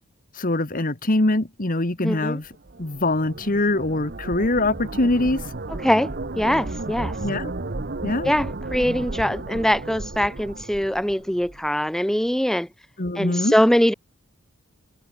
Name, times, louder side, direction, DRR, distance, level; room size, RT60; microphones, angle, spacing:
voice 1, 0.3-2.5 2.8-5.4 7.2-7.5 8.0-8.3 13.0-13.5, left 2 dB, 40° left, 1.6 m, -23 dB
voice 2, 2.0-2.4 5.8-6.1 6.4-7.1 8.2-12.7 13.2-13.9, equal, ahead, 0.5 m, -22 dB
sound 1, 2.4-11.7, right 2 dB, 50° right, 1.1 m, -33 dB
head